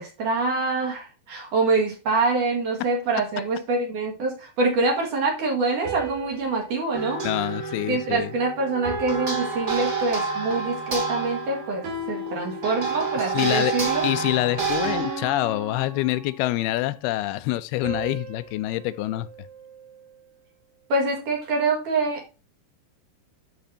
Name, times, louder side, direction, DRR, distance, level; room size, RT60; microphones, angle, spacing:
voice 1, 0.0-7.3 7.9-14.1 20.9-22.2, right 3 dB, 60° right, 3.1 m, -25 dB
sound 1, 5.8-8.3 8.8-10.6 11.8-13.4 14.8-16.7 17.8-20.2, right 2 dB, 90° right, 5.0 m, -37 dB
sound 2, 6.9-15.2, right 4 dB, 25° right, 2.5 m, -29 dB
voice 2, 7.2-8.3 13.3-19.3, left 16 dB, 80° left, 2.5 m, -26 dB
12.0 x 5.1 x 2.7 m
omnidirectional pair, 4.6 m